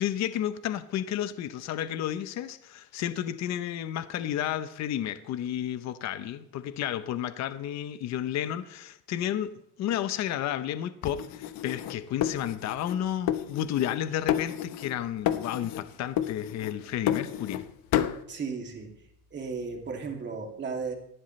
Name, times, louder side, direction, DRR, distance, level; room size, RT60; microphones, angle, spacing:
voice 1, 0.0-17.6, left 11 dB, 45° left, 11 dB, 0.8 m, -32 dB
sound 1, 11.0-13.0 13.3-14.0 14.3-15.0 15.2-15.9 16.2-17.6 17.9-18.2, left 11 dB, 60° left, 1.1 m, -30 dB
voice 2, 18.3-18.9 19.3-20.9, right 5 dB, 30° right, 2 dB, 2.5 m, -35 dB
18.5 x 14.5 x 3.2 m, 0.76 s
cardioid pair, 170°, 39 cm